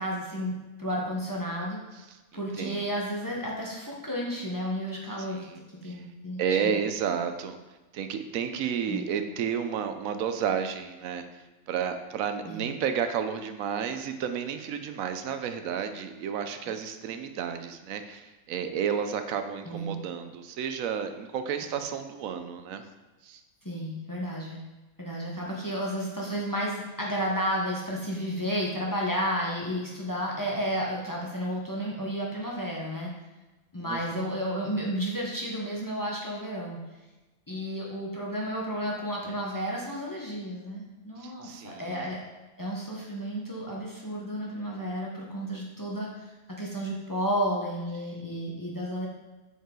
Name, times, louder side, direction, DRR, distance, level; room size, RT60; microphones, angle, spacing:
voice 1, 0.0-1.8 2.3-5.4 5.8-6.8 8.9-9.1 12.5-12.6 19.6-19.9 21.6-21.7 23.6-24.6 25.0-33.1 33.7-36.8 37.5-42.2 42.6-46.3 46.6-49.1, equal, 15° left, -3 dB, 0.9 m, -32 dB
voice 2, 2.1-2.8 5.2-5.6 5.8-6.0 6.4-7.6 7.9-11.2 11.7-22.8 23.2-23.4 33.8-34.3 41.2-42.1, right 7 dB, 85° right, 8 dB, 1.0 m, -32 dB
6.5 x 5.3 x 3.8 m, 1.1 s
omnidirectional pair, 1.4 m